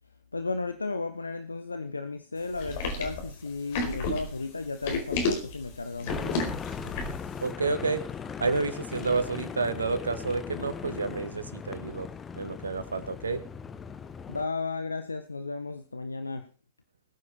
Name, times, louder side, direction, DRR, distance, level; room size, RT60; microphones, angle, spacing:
voice 1, 0.3-6.3 6.8-7.0 14.3-16.5, left 3 dB, 80° left, 10 dB, 1.0 m, -34 dB
sound 1, 2.5-7.3, left 3 dB, 50° left, 4.7 m, -31 dB
sound 2, 6.0-14.4, left 6 dB, 20° left, 1.2 m, -39 dB
voice 2, 7.4-8.1 8.4-12.1 12.3-13.4, right 4 dB, 75° right, 12 dB, 1.8 m, -29 dB
20.5 x 9.7 x 4.3 m, 0.36 s
figure-of-eight pair, 90°, 0 cm